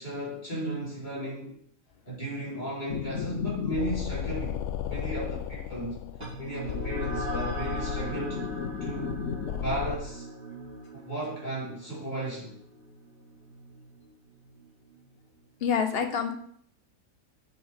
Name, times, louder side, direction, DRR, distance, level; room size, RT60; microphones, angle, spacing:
voice 1, 0.0-1.6 2.0-6.0 6.4-8.4 8.8-9.2 9.6-10.3 10.9-12.6, right 1 dB, 25° left, -8 dB, 4.6 m, -35 dB
sound 1, 2.9-10.0, left 9 dB, 65° left, 0.8 m, -34 dB
sound 2, 6.2-15.1, right 1 dB, 35° right, 2.9 m, -39 dB
voice 2, 15.6-16.3, left 7 dB, 45° left, 6 dB, 1.0 m, -26 dB
7.6 x 7.0 x 5.1 m, 0.64 s
omnidirectional pair, 1.8 m